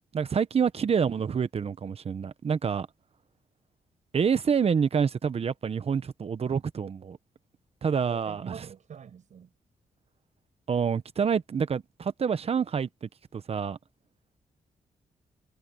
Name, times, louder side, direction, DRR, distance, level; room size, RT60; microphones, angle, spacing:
voice 1, 0.1-2.9 4.1-7.2 7.8-8.5 10.7-13.8, right 6 dB, 50° right, 1.2 m, -27 dB
voice 2, 7.9-9.5, right 7 dB, 65° right, 6.4 m, -45 dB
cardioid pair, 80°, 13 cm